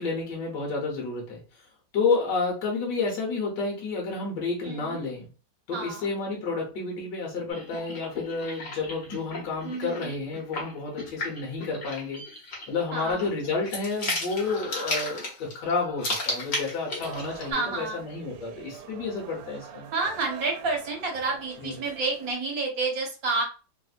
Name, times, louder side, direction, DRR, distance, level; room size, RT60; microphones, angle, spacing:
voice 1, 0.0-1.7 1.9-5.3 5.7-12.2 12.7-19.9 21.6-21.8, left 4 dB, 70° left, -1 dB, 1.5 m, -30 dB
voice 2, 4.6-5.0 5.7-6.1 9.6-10.1 12.9-13.3 17.5-18.0 19.9-23.4, right 3 dB, 55° right, 0 dB, 1.2 m, -29 dB
sound 1, 7.5-17.5, left 2 dB, 50° left, 1.4 m, -35 dB
sound 2, 17.0-22.3, right 7 dB, 90° right, 1.3 m, -45 dB
3.4 x 2.6 x 2.4 m, 0.34 s
omnidirectional pair, 2.0 m